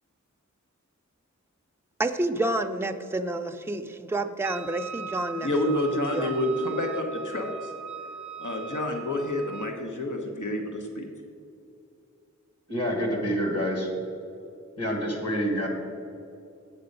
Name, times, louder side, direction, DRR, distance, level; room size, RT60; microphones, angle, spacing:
voice 1, 2.0-5.8 6.1-6.3, right 2 dB, 10° right, 8 dB, 0.4 m, -29 dB
Wind instrument woodwind instrument, 4.4-9.8, right 6 dB, 75° right, 0.4 m, -39 dB
voice 2, 5.4-7.7 8.4-11.1, left 1 dB, 80° left, 2 dB, 1.0 m, -29 dB
voice 3, 12.7-13.9 14.8-15.7, equal, 55° left, 1 dB, 1.9 m, -27 dB
8.2 x 6.8 x 5.2 m, 2.6 s
wide cardioid pair, 50°, 30 cm